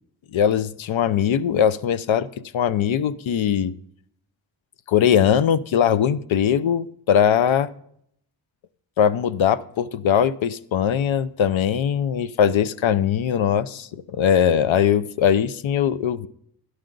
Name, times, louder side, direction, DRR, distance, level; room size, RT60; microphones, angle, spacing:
voice 1, 0.3-2.3 2.5-3.7 4.9-7.7 9.0-16.3, left 8 dB, 75° left, 0.6 m, -20 dB
12.0 x 11.5 x 3.9 m
wide cardioid pair, 85°, 47 cm